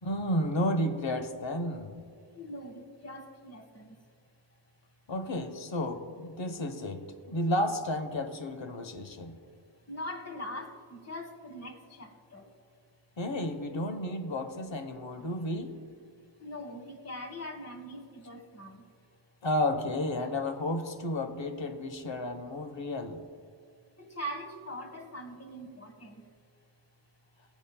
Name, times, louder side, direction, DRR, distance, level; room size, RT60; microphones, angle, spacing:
voice 1, 0.0-1.9 5.1-9.4 13.2-15.7 19.4-23.2, left 1 dB, 70° left, 7 dB, 1.0 m, -32 dB
voice 2, 2.4-3.9 9.9-12.4 16.4-18.8 24.0-26.2, equal, 30° left, 5 dB, 1.4 m, -42 dB
19.0 x 8.3 x 2.2 m, 2.3 s
wide cardioid pair, 55°, 47 cm